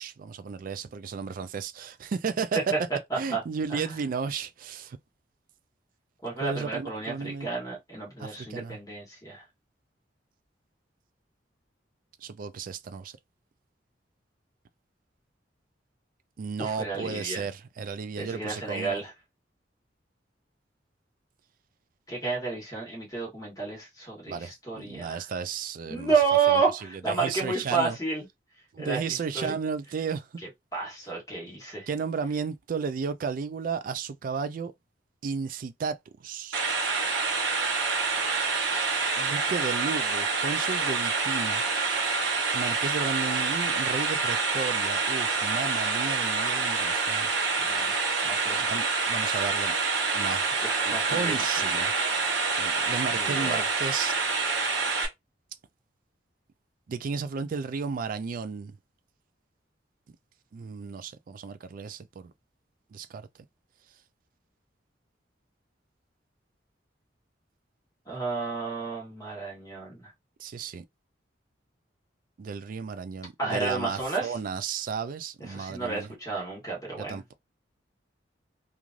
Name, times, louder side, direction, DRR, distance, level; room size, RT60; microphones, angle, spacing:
voice 1, 0.0-2.6 3.2-5.0 6.4-7.5 8.2-8.8 12.2-13.1 16.4-19.0 24.3-26.1 26.5-26.6 27.1-28.0 28.7-30.3 31.9-34.7 35.2-36.0 36.2-36.6 39.2-41.6 42.5-47.3 48.6-49.7 50.1-50.5 50.8-51.9 52.6-54.2 56.9-58.8 60.5-62.3 62.9-63.3 70.4-70.8 72.4-76.1 77.0-77.3, right 5 dB, 50° right, 0.3 m, -34 dB
voice 2, 3.1-3.4 3.7-3.9 6.2-9.4 16.6-17.4 18.2-19.1 22.1-25.3 25.9-28.3 28.8-29.6 30.7-31.9 47.6-47.9 48.2-48.6 50.6-51.9 53.1-53.7 68.1-70.1 73.4-74.4 75.4-77.2, right 4 dB, 20° left, 1.2 m, -31 dB
sound 1, 36.5-55.1, right 4 dB, 85° right, 0.9 m, -27 dB
3.1 x 2.5 x 2.4 m
head